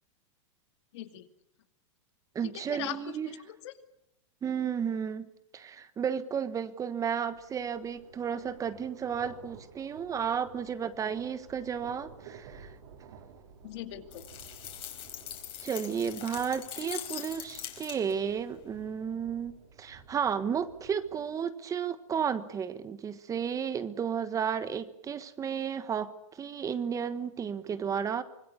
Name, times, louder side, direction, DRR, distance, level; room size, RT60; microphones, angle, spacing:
voice 1, 0.9-1.3 2.5-3.7 13.6-14.3, left 14 dB, 60° left, 8 dB, 2.5 m, -40 dB
voice 2, 2.3-3.4 4.4-12.7 15.6-28.2, right 7 dB, 20° right, 13 dB, 1.3 m, -33 dB
sound 1, 6.9-21.3, right 6 dB, 70° right, 6.3 m, -54 dB
sound 2, 14.1-18.3, left 11 dB, 35° left, 4.5 m, -42 dB
25.5 x 20.0 x 8.4 m, 0.80 s
hypercardioid pair, 130°, 16 cm